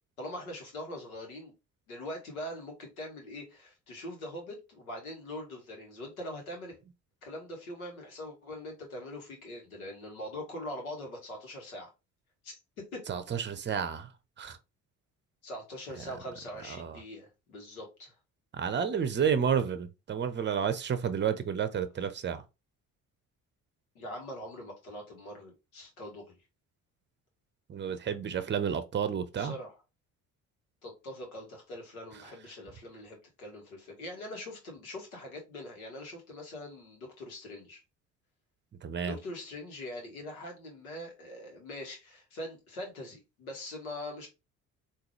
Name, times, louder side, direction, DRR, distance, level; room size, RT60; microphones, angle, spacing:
voice 1, 0.2-1.5 1.9-6.8 7.2-11.9 12.4-13.0 15.4-18.2 22.0-22.1 23.9-26.4 29.4-29.7 30.8-37.8 39.0-44.3, left 1 dB, 85° left, 1.3 m, -42 dB
voice 2, 13.1-14.1 14.4-14.6 16.7-17.0 18.5-22.4 27.7-29.5 38.8-39.2, right 7 dB, 25° right, 0.7 m, -31 dB
3.8 x 2.6 x 3.1 m
hypercardioid pair, 50°, 41 cm